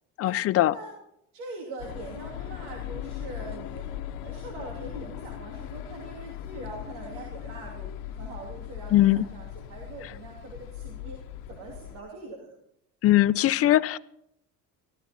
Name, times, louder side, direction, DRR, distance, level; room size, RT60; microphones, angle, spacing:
voice 1, 0.2-0.7 8.9-9.2 13.0-14.0, left 14 dB, 45° left, 17 dB, 0.6 m, -20 dB
voice 2, 1.3-3.9 4.2-11.2 11.5-12.5, right 3 dB, 90° right, 0 dB, 2.8 m, -42 dB
sound 1, 1.8-12.0, left 11 dB, 85° left, 0.9 m, -39 dB
14.5 x 14.0 x 4.3 m, 0.76 s
cardioid pair, 115°, 32 cm